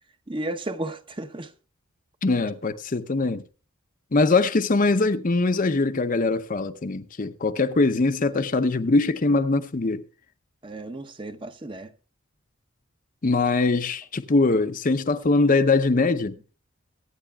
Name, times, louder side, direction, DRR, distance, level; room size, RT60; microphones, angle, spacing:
voice 1, 0.3-1.5 10.6-11.9, right 1 dB, 25° right, 0.7 m, -33 dB
voice 2, 2.2-3.4 4.1-10.0 13.2-16.3, left 3 dB, 40° left, 0.6 m, -22 dB
23.5 x 9.3 x 2.3 m
head